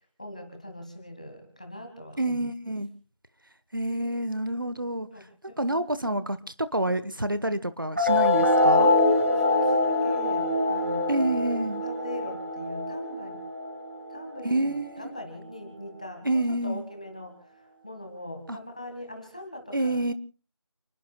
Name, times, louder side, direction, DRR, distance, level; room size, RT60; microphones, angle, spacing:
voice 1, 0.2-2.5 5.1-5.6 9.4-11.4 11.8-13.4 14.1-14.7 15.0-20.1, left 1 dB, 15° left, 4 dB, 1.7 m, -41 dB
voice 2, 2.2-2.9 3.7-5.1 5.6-8.9 11.1-11.8 14.4-15.1 16.2-16.8 18.5-18.6 19.7-20.1, right 1 dB, 45° right, 14 dB, 1.2 m, -28 dB
sound 1, 8.0-14.9, left 2 dB, 25° right, 2.1 m, -24 dB
30.0 x 20.5 x 2.3 m, 0.38 s
figure-of-eight pair, 180°, 15 cm